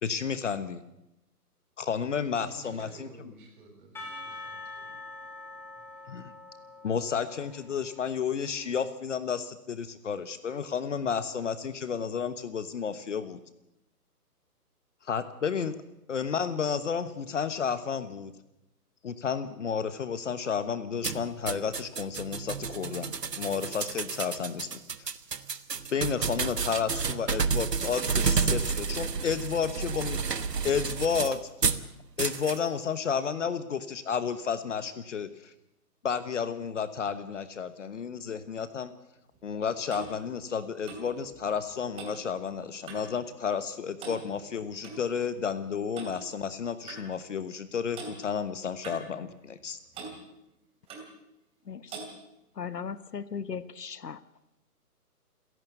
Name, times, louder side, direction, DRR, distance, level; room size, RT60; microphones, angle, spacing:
voice 1, 0.0-0.8 1.8-3.1 6.1-6.3 6.8-13.4 15.0-15.8 16.1-18.3 19.0-25.1 25.9-31.4 31.7-31.8 32.2-35.5 36.0-38.9 39.4-49.8, left 6 dB, 50° left, 12 dB, 1.3 m, -32 dB
voice 2, 2.4-5.0, right 2 dB, 30° right, 2 dB, 6.0 m, -51 dB
Percussion / Church bell, 3.9-9.0, left 2 dB, 5° left, 1.8 m, -45 dB
sound 1, 21.0-31.8 32.2-32.6, right 5 dB, 90° right, 1.4 m, -30 dB
Clock, 39.3-43.2 43.5-43.7 44.0-45.0 45.9-46.2 46.9-47.0 47.9-48.1 48.8-49.7 49.9-50.2 50.9-51.1 51.9-52.1, right 4 dB, 10° right, 2.8 m, -43 dB
voice 3, 52.5-54.2, left 6 dB, 85° left, 16 dB, 1.3 m, -37 dB
29.0 x 11.0 x 8.2 m, 0.89 s
hypercardioid pair, 155°, 47 cm